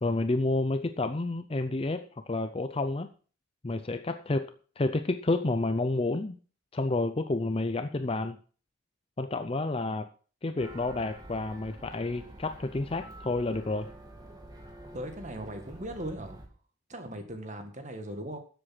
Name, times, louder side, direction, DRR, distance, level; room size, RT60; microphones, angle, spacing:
voice 1, 0.0-3.1 3.6-6.4 6.7-8.4 9.2-10.1 10.4-13.9, left 2 dB, 30° left, 0.5 m, -30 dB
sound 1, 10.6-16.5, right 1 dB, 20° right, 2.2 m, -48 dB
voice 2, 14.9-16.4 16.9-18.4, right 1 dB, 35° right, 1.9 m, -38 dB
12.5 x 7.9 x 5.9 m
head